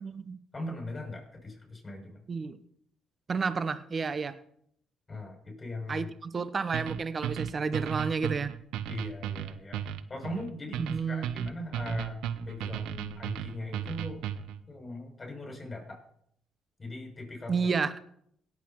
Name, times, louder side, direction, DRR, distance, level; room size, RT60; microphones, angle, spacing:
voice 1, 0.0-0.4 2.3-2.6 3.3-4.4 5.9-8.5 10.8-11.3 17.5-18.0, right 5 dB, 40° right, 14 dB, 0.8 m, -31 dB
voice 2, 0.5-2.2 5.1-6.1 8.9-9.8 10.1-14.2 14.7-16.0 16.8-17.7, left 1 dB, 30° left, 0 dB, 6.9 m, -40 dB
sound 1, 6.7-14.6, right 9 dB, 80° right, 0.7 m, -35 dB
17.5 x 8.3 x 4.5 m, 0.69 s
supercardioid pair, 60°, 0 cm